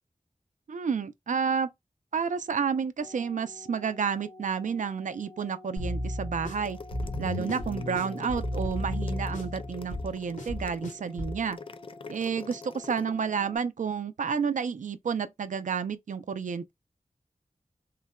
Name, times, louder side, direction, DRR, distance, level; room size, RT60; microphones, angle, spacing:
voice 1, 0.7-1.7 2.1-6.8 7.2-11.6 12.1-16.7, right 6 dB, 80° right, 0.4 m, -30 dB
sound 1, 3.0-13.6, left 2 dB, 60° left, 1.6 m, -50 dB
sound 2, 5.8-11.4, left 1 dB, 85° left, 1.2 m, -34 dB
sound 3, 6.5-13.1, left 5 dB, 45° left, 0.3 m, -45 dB
3.7 x 2.1 x 2.2 m
wide cardioid pair, 65°, 13 cm